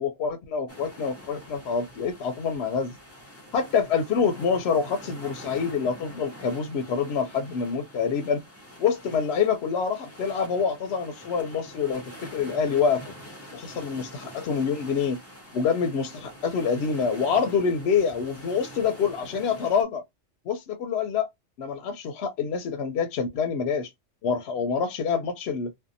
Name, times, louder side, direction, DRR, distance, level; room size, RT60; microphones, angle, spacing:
voice 1, 0.0-3.0 3.5-8.4 8.8-12.0 12.3-13.1 13.5-15.2 15.5-20.0 20.5-21.3 21.6-23.9 24.2-25.7, left 6 dB, 65° left, 0.7 m, -26 dB
sound 1, 0.7-19.8, equal, 15° left, 0.5 m, -45 dB
2.6 x 2.1 x 2.5 m
omnidirectional pair, 1.3 m